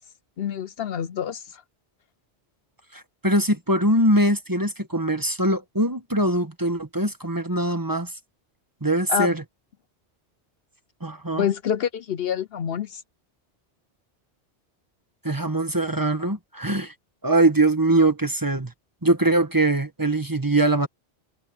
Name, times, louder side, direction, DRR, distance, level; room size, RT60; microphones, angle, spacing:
voice 1, 0.4-1.6 9.1-9.3 11.4-13.0, left 8 dB, 65° left, 0.9 m, -27 dB
voice 2, 2.9-8.1 8.8-9.4 11.0-11.4 15.2-16.9 17.2-18.7 19.0-20.9, right 1 dB, 20° right, 1.3 m, -22 dB
omnidirectional pair, 1.1 m